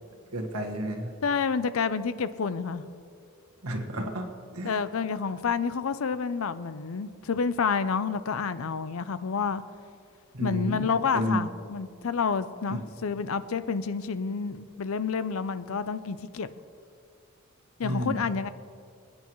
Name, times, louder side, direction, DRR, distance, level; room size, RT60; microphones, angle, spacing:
voice 1, 0.3-1.1 3.6-4.3 4.5-4.8 10.3-10.9 11.1-11.4 12.7-12.8 17.8-18.2, equal, 85° right, 3 dB, 1.6 m, -31 dB
voice 2, 1.2-2.9 4.6-9.6 10.4-16.5 17.8-18.5, left 5 dB, 65° left, 13 dB, 0.5 m, -29 dB
26.5 x 9.6 x 3.1 m, 2.3 s
head